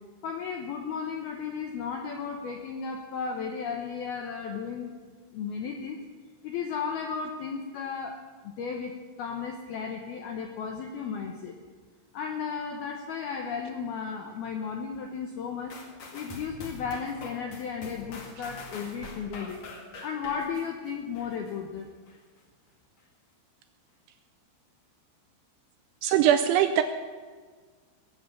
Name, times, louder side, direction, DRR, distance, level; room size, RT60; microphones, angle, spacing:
voice 1, 0.2-4.9 5.3-6.0 6.4-11.5 12.1-15.8 16.1-19.6 20.0-21.9, left 6 dB, 80° left, 3 dB, 2.2 m, -34 dB
sound 1, 15.7-21.5 22.1-22.2, left 3 dB, 50° left, 2.2 m, -44 dB
voice 2, 26.0-26.8, right 10 dB, 80° right, 8 dB, 2.8 m, -21 dB
20.5 x 8.1 x 8.5 m, 1.5 s
omnidirectional pair, 5.9 m